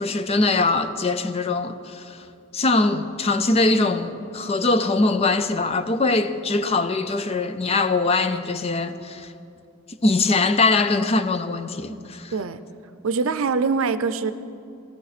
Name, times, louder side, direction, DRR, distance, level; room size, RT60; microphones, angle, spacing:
voice 1, 0.0-2.2 2.5-9.3 10.0-12.3, left 3 dB, 30° left, 0.5 m, -22 dB
voice 2, 12.3-12.6 13.0-14.3, right 4 dB, 85° right, 0.5 m, -23 dB
15.0 x 14.0 x 4.2 m
head